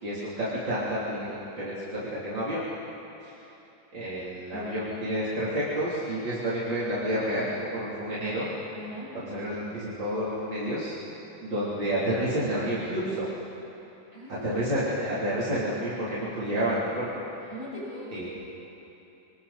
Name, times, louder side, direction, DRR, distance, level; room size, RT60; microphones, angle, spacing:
voice 1, 0.0-2.7 3.2-3.3 3.9-8.6 9.1-10.9 11.4-13.3 14.4-17.1 17.4-17.5 18.1-18.3, equal, 85° right, -10 dB, 4.2 m, -30 dB
voice 2, 8.7-9.1 14.1-14.6 17.5-18.3, left 1 dB, 40° right, -8 dB, 7.1 m, -39 dB
26.5 x 25.5 x 4.3 m, 2.9 s
omnidirectional pair, 2.0 m